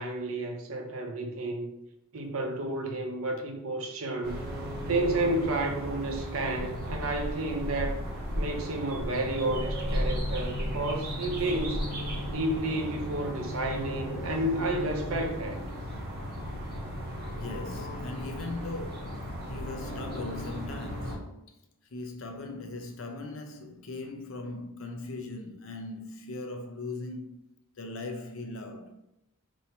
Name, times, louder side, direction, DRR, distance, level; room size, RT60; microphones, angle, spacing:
voice 1, 0.0-1.7 2.1-4.4 4.9-8.0 8.4-11.8 12.3-15.6, right 2 dB, 75° right, 0.7 m, -31 dB
sound 1, 4.2-21.2, equal, 45° right, 1.3 m, -35 dB
voice 2, 17.3-21.6 21.9-27.4 27.8-29.0, left 2 dB, 70° left, 0.6 m, -39 dB
2.8 x 2.7 x 4.3 m
head